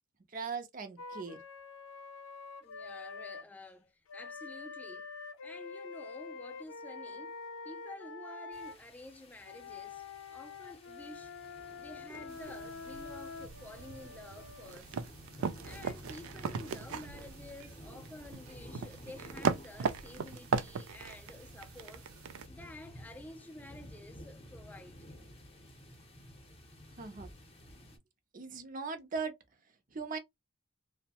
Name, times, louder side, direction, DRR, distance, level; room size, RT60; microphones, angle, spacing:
voice 1, 0.3-1.4 27.0-27.3 28.3-29.3 29.9-30.2, right 5 dB, 40° right, 0.6 m, -39 dB
Wind instrument woodwind instrument, 1.0-3.5 4.1-8.8 9.4-14.8, left 4 dB, 85° left, 0.6 m, -46 dB
voice 2, 2.6-5.1 5.4-7.4 7.6-11.3 11.8-15.0 15.6-22.1 22.5-25.0, left 2 dB, 10° left, 0.4 m, -51 dB
sound 1, 8.5-28.0, equal, 30° left, 0.7 m, -53 dB
sound 2, 12.3-22.5, right 5 dB, 85° right, 0.4 m, -38 dB
2.7 x 2.1 x 2.8 m
head